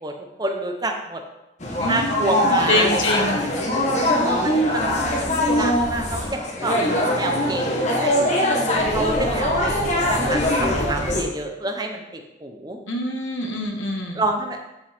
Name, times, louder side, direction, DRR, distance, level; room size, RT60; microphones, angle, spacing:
voice 1, 0.0-1.2 1.8-3.1 3.5-3.6 4.2-6.8 7.2-7.7 8.0-8.4 8.9-12.8 14.1-14.6, right 2 dB, 20° right, 3 dB, 0.9 m, -28 dB
sound 1, 1.6-11.2, left 1 dB, 35° left, 1.4 m, -22 dB
voice 2, 1.8-3.4 12.9-14.2, left 1 dB, 90° left, 1 dB, 1.7 m, -25 dB
12.5 x 5.4 x 3.6 m, 0.95 s
head